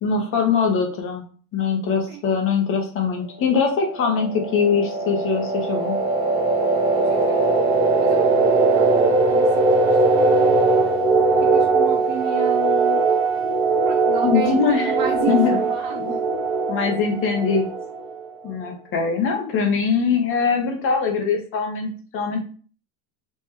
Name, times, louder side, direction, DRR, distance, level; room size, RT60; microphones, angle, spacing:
voice 1, 0.0-1.2 1.5-6.0 14.2-14.9 15.3-15.6 16.7-17.7 18.4-22.4, left 5 dB, 30° left, 2 dB, 0.8 m, -22 dB
sound 1, 3.8-18.4, right 3 dB, 30° right, 0.5 m, -20 dB
voice 2, 7.0-7.6 8.0-8.9 9.3-10.6 11.4-13.0 13.8-16.2, right 6 dB, 80° right, -2 dB, 1.1 m, -32 dB
3.2 x 2.9 x 3.6 m, 0.42 s
supercardioid pair, 150°, 46 cm